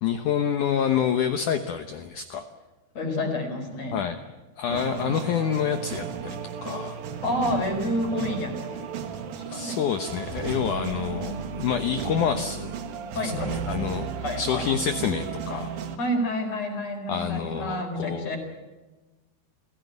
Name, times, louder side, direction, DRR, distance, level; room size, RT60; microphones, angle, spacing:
voice 1, 0.0-2.4 3.9-4.2 4.6-7.0 9.5-12.7 13.1-14.1 14.4-15.7 17.1-18.4, left 8 dB, 80° left, 7 dB, 1.8 m, -27 dB
voice 2, 2.9-4.0 7.2-8.9 9.4-9.8 10.8-11.4 13.1-13.5 14.2-14.6 16.0-18.4, left 1 dB, 40° left, 4 dB, 4.9 m, -29 dB
sound 1, 4.7-16.0, right 7 dB, 60° right, 3.0 m, -34 dB
29.0 x 16.5 x 9.4 m, 1.2 s
omnidirectional pair, 5.2 m